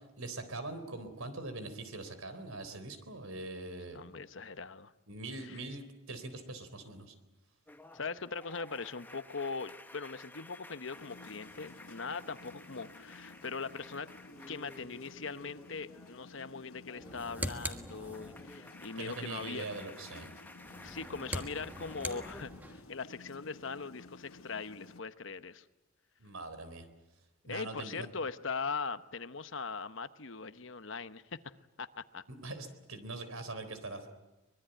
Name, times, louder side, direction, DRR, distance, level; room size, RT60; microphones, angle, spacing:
voice 1, 0.0-4.1 5.1-7.1 19.0-20.3 26.2-26.9 27.5-28.1 32.3-34.1, right 2 dB, 85° right, 10 dB, 3.8 m, -42 dB
voice 2, 3.9-4.9 5.4-5.6 7.9-14.1 14.5-19.7 20.8-25.7 27.5-32.2, left 4 dB, 60° left, 12 dB, 1.0 m, -41 dB
sound 1, 7.7-16.4 16.7-22.4, left 2 dB, 10° left, 0.9 m, -53 dB
sound 2, 10.9-25.0, left 3 dB, 85° left, 1.2 m, -54 dB
sound 3, 16.9-18.6 20.6-22.9, right 1 dB, 10° right, 1.4 m, -42 dB
24.5 x 22.0 x 9.1 m, 1.0 s
head